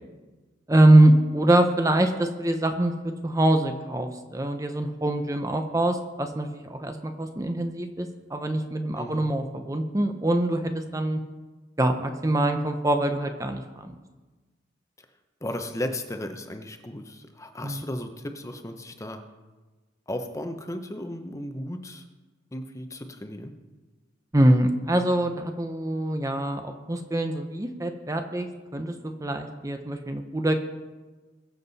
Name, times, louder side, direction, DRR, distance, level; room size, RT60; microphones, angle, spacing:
voice 1, 0.7-11.2 11.8-13.9 17.6-17.8 24.3-28.5 28.7-28.9 29.2-30.5, right 1 dB, 15° right, 6 dB, 0.7 m, -23 dB
voice 2, 9.0-9.3 15.4-19.2 20.1-22.0 22.5-23.5, left 1 dB, 15° left, 6 dB, 0.8 m, -35 dB
21.5 x 7.5 x 4.1 m, 1.3 s
head